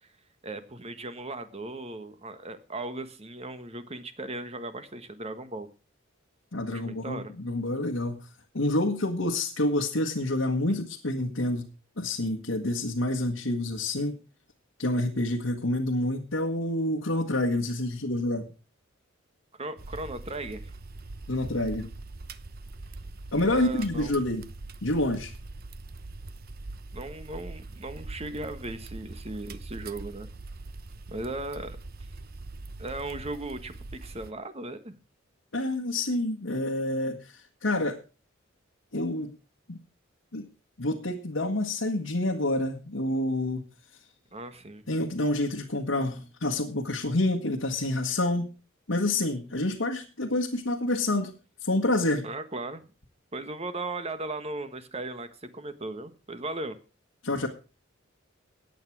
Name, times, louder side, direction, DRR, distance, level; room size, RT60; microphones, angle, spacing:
voice 1, 0.4-5.7 6.7-7.3 10.7-10.8 19.5-20.7 23.4-24.2 26.9-30.3 31.1-31.8 32.8-35.0 44.3-44.8 52.2-52.9 53.3-55.3 55.5-56.8, right 2 dB, 30° right, 10 dB, 1.4 m, -37 dB
voice 2, 6.5-8.3 8.5-11.7 12.0-14.2 14.8-18.4 21.3-21.9 23.3-24.4 24.8-25.3 35.5-38.0 38.9-39.3 39.7-39.8 40.3-40.5 40.8-43.6 44.9-48.5 48.9-51.3 51.6-52.3 57.2-57.5, left 1 dB, 85° left, 1 dB, 1.7 m, -28 dB
sound 1, 19.8-34.3, right 2 dB, 50° right, 0.8 m, -42 dB
15.0 x 9.4 x 4.8 m, 0.33 s
head